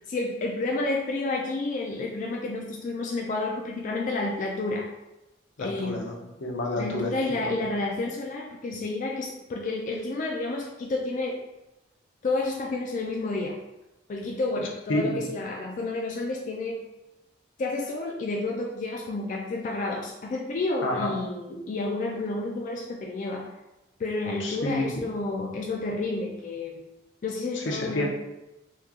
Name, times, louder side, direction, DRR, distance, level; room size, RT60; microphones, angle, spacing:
voice 1, 0.1-4.9 5.6-6.1 6.8-11.4 12.2-13.6 14.1-16.8 17.6-23.5 24.0-26.8 27.2-28.1, left 2 dB, 45° left, -1 dB, 0.3 m, -30 dB
voice 2, 5.6-7.1 7.4-7.6 14.9-15.2 20.8-21.1 24.4-24.9 27.5-28.1, left 1 dB, 80° left, -1 dB, 0.7 m, -29 dB
2.9 x 2.3 x 3.5 m, 0.98 s
head